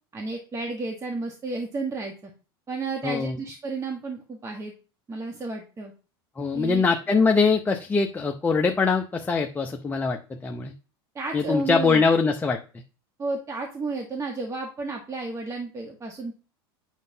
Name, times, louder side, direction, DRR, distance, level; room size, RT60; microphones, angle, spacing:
voice 1, 0.1-2.3 2.7-4.7 5.1-5.9 6.5-6.8 11.1-12.1 13.2-16.3, right 3 dB, 25° right, 2 dB, 1.3 m, -32 dB
voice 2, 3.0-3.4 6.4-10.7 11.3-12.6, left 4 dB, 15° left, 3 dB, 0.7 m, -23 dB
9.0 x 6.5 x 2.8 m, 0.35 s
supercardioid pair, 110°, 13 cm